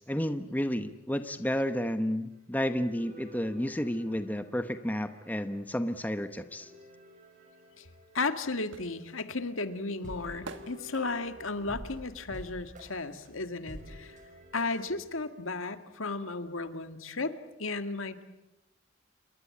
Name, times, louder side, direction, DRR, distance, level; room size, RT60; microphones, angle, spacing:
voice 1, 0.0-6.7, equal, 10° left, 9 dB, 1.0 m, -31 dB
sound 1, 2.8-5.5 6.4-9.4 9.7-9.8 10.0-15.0, equal, 35° right, 6.5 m, -50 dB
sound 2, 8.0-13.7 14.0-15.6 15.8-15.9, right 3 dB, 60° right, 1.6 m, -50 dB
voice 2, 8.1-14.2 14.5-18.2, left 3 dB, 75° left, 9 dB, 1.9 m, -34 dB
28.5 x 22.0 x 8.6 m, 0.92 s
head